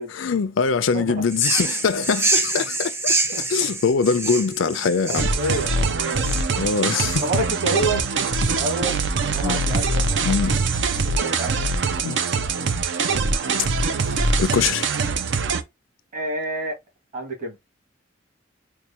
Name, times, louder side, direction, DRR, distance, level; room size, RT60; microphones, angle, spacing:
voice 1, 0.1-3.2 3.5-5.3 6.6-7.2 9.4-9.6 10.3-10.5 12.0-12.2 14.4-14.9, left 5 dB, 80° left, 0.5 m, -22 dB
voice 2, 0.9-1.3 1.6-2.0 2.6-2.7 3.3-3.7 4.6-4.8 5.1-6.6 7.2-8.0 8.5-10.5 11.1-11.7 16.1-16.8 17.1-17.6, right 1 dB, 45° right, 2.0 m, -29 dB
sound 1, 1.3-7.6, right 3 dB, 15° right, 0.6 m, -26 dB
sound 2, 5.2-15.6, right 4 dB, 65° right, 0.6 m, -23 dB
4.6 x 2.3 x 2.8 m
head